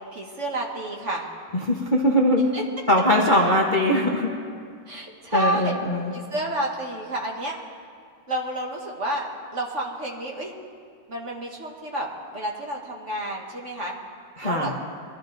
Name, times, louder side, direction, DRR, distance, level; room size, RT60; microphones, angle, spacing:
voice 1, 0.1-1.3 2.5-2.6 4.9-5.7 6.1-7.6 8.3-10.5 11.1-12.1 12.3-13.9 14.4-14.7, right 1 dB, 40° right, -1 dB, 1.7 m, -29 dB
voice 2, 1.5-2.4 2.9-4.3 5.3-6.1 14.4-14.7, equal, 30° left, -1 dB, 1.0 m, -21 dB
23.0 x 12.5 x 3.9 m, 2.2 s
omnidirectional pair, 2.0 m